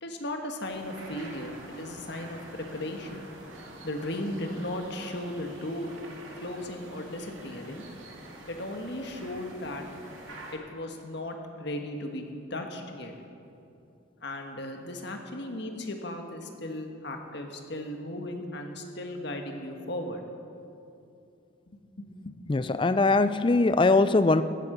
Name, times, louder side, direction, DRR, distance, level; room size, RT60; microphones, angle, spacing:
voice 1, 0.0-3.3 3.8-5.9 6.4-7.8 8.5-9.9 10.5-12.2 12.5-13.1 14.2-20.2 22.0-22.3, left 1 dB, 60° left, 4 dB, 1.5 m, -36 dB
sound 1, 0.6-10.5, right 1 dB, 85° right, 2.3 m, -46 dB
voice 2, 22.5-24.4, left 3 dB, 25° left, 13 dB, 0.4 m, -21 dB
16.5 x 8.7 x 6.8 m, 2.6 s
head